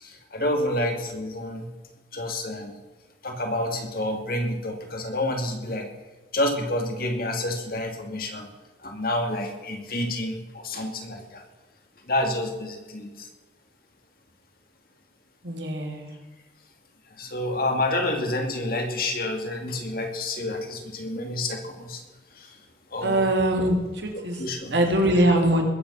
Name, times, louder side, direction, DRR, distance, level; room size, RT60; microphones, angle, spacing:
voice 1, 0.0-1.7 2.1-2.7 3.2-5.9 6.3-8.5 8.8-11.4 12.1-13.3 17.2-22.0 22.4-22.5 22.9-23.3 24.3-24.8, left 1 dB, 50° left, 3 dB, 2.6 m, -28 dB
voice 2, 15.4-16.2 23.0-23.7 24.0-24.4 24.7-25.6, right 1 dB, 70° right, 2 dB, 2.9 m, -22 dB
21.0 x 8.9 x 5.7 m, 1.3 s
head